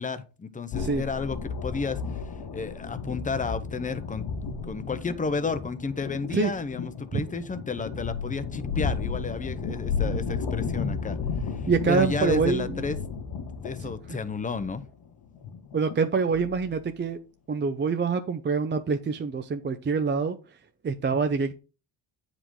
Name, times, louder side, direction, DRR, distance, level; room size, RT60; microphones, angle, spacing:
voice 1, 0.0-4.3 4.7-13.0 13.6-14.8, left 4 dB, 20° left, 11 dB, 0.7 m, -32 dB
sound 1, 0.7-16.9, left 5 dB, 85° left, 2.3 m, -33 dB
voice 2, 11.7-12.8 13.8-13.9 15.7-17.2 17.5-20.4 20.8-21.6, right 5 dB, 25° right, 8 dB, 0.5 m, -25 dB
9.7 x 5.0 x 3.8 m, 0.32 s
cardioid pair, 140°, 43 cm